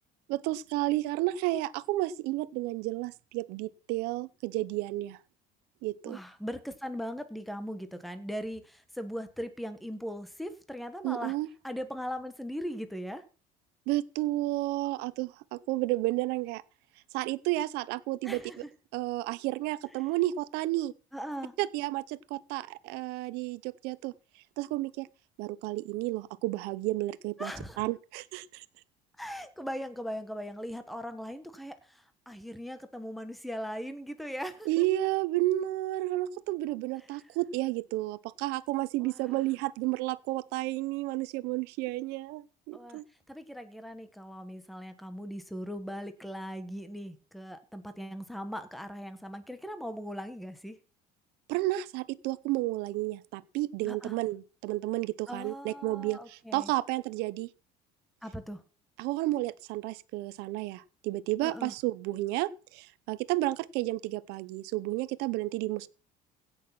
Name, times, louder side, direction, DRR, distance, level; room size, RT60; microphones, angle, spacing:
voice 1, 0.3-5.2 5.8-6.2 11.0-11.5 13.9-16.6 17.1-18.4 18.9-20.9 21.6-24.1 24.6-25.1 25.4-27.5 27.8-28.6 34.6-43.0 51.5-57.5 59.0-65.9, right 17 dB, 80° right, 0.9 m, -31 dB
voice 2, 6.0-11.3 11.6-13.2 18.2-18.7 21.1-21.5 27.4-27.8 29.2-34.8 39.0-39.4 42.7-43.0 43.3-50.8 53.8-54.1 55.3-56.7 58.2-58.6 61.4-61.7, equal, ahead, 1.3 m, -39 dB
16.0 x 6.6 x 5.9 m
cardioid pair, 145°, 16 cm